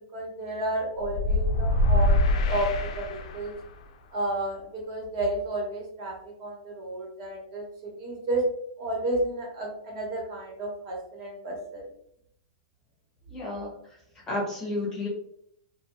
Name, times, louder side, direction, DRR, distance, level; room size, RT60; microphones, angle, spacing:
voice 1, 0.1-3.5 4.1-8.4 8.8-11.8, right 1 dB, 40° right, -1 dB, 1.0 m, -32 dB
sound 1, 1.0-3.6, left 1 dB, 65° left, 0.4 m, -24 dB
voice 2, 13.3-14.0 14.3-15.1, left 2 dB, 15° left, -3 dB, 0.6 m, -32 dB
2.6 x 2.2 x 2.8 m, 0.69 s
supercardioid pair, 165°, 4 cm